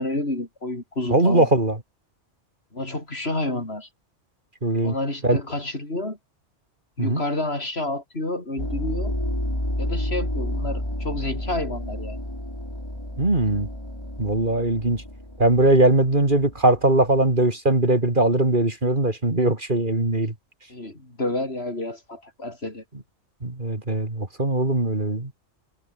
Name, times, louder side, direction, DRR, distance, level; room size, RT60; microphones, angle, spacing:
voice 1, 0.0-1.5 2.7-3.9 4.8-6.2 7.0-9.1 9.8-12.2 20.7-22.8, left 2 dB, 60° left, 5.8 m, -29 dB
voice 2, 1.1-1.8 4.6-5.0 5.2-5.4 7.0-7.2 13.2-13.7 14.2-15.0 15.4-20.3 23.4-25.3, right 2 dB, 45° right, 3.5 m, -20 dB
sound 1, 8.6-17.3, left 1 dB, 20° left, 5.9 m, -30 dB
omnidirectional pair, 1.2 m